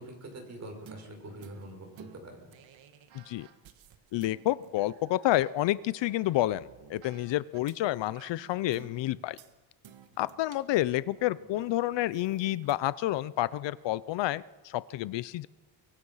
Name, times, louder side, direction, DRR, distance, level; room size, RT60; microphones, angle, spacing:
voice 1, 0.0-2.5, right 1 dB, 35° right, 3 dB, 6.0 m, -44 dB
sound 1, 0.9-7.8 8.1-9.5 9.8-12.7, right 8 dB, 65° right, 1.9 m, -54 dB
voice 2, 3.1-3.5 4.1-9.4 10.2-15.5, left 15 dB, 65° left, 17 dB, 0.7 m, -29 dB
24.5 x 23.5 x 5.7 m, 1.2 s
cardioid pair, 135°, 48 cm